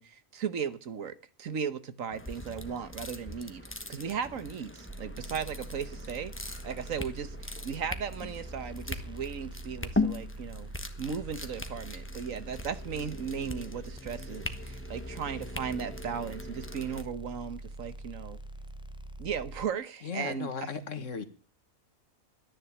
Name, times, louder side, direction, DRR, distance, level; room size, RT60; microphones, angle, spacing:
voice 1, 0.0-3.6 3.9-10.7 11.0-18.4 19.2-20.5, right 7 dB, 75° right, 1.5 m, -36 dB
sound 1, 2.1-17.0, left 2 dB, 10° left, 1.1 m, -39 dB
sound 2, 4.9-19.6, right 1 dB, 5° right, 0.5 m, -44 dB
voice 2, 20.0-21.2, left 5 dB, 65° left, 1.8 m, -36 dB
13.0 x 10.5 x 7.2 m
omnidirectional pair, 1.4 m